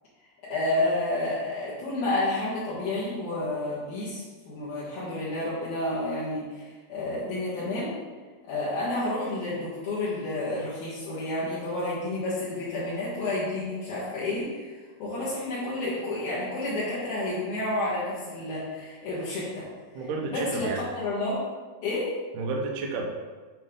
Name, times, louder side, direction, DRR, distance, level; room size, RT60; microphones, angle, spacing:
voice 1, 0.5-7.9 8.5-19.7 20.3-20.7 20.9-21.4 21.8-22.1, left 2 dB, 60° left, -10 dB, 3.0 m, -30 dB
voice 2, 19.9-20.8 22.3-23.0, right 3 dB, 80° right, 1 dB, 1.9 m, -31 dB
9.7 x 5.4 x 3.8 m, 1.4 s
omnidirectional pair, 5.3 m